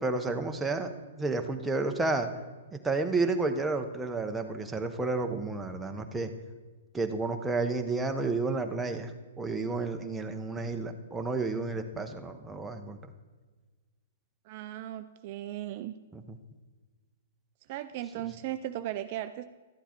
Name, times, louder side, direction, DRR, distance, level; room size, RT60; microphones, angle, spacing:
voice 1, 0.0-0.9 1.2-2.3 2.7-6.3 6.9-9.1 9.4-13.0 16.1-16.4, right 3 dB, 10° right, 4 dB, 0.8 m, -31 dB
voice 2, 14.5-15.9 17.7-19.4, right 13 dB, 45° right, 10 dB, 0.4 m, -37 dB
12.5 x 8.0 x 4.4 m, 1.4 s
hypercardioid pair, 135°, 0 cm